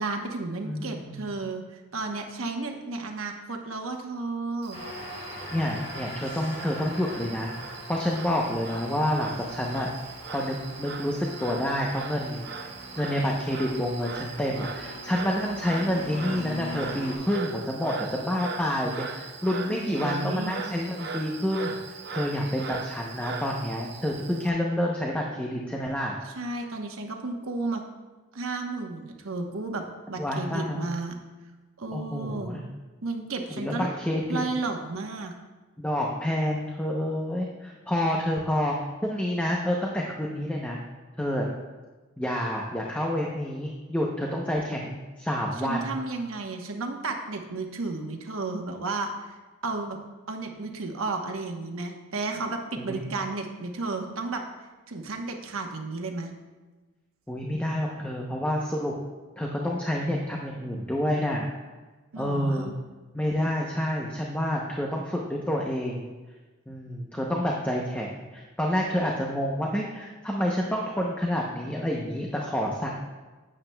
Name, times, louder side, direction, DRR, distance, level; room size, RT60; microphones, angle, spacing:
voice 1, 0.0-1.6 1.9-4.8 19.7-20.6 26.2-27.8 28.3-29.8 30.1-31.2 31.8-32.5 33.0-33.9 34.3-35.3 45.6-49.3 49.6-50.0 50.3-54.4 54.9-56.3 62.1-62.7, right 3 dB, 85° right, 3 dB, 1.1 m, -33 dB
voice 2, 0.6-1.2 5.5-9.9 10.3-12.7 13.0-26.2 30.2-30.8 31.9-32.6 33.5-34.4 35.8-38.8 39.0-40.8 41.2-41.5 42.2-46.0 52.8-53.1 57.3-58.9 59.4-61.5 62.2-62.7 63.1-66.1 66.7-72.9, left 1 dB, 5° left, -1 dB, 0.7 m, -28 dB
Frog, 4.6-24.5, right 5 dB, 55° right, 0.7 m, -40 dB
sound 1, 4.7-17.1, left 1 dB, 65° left, 2.1 m, -42 dB
11.5 x 8.8 x 2.2 m, 1.3 s
head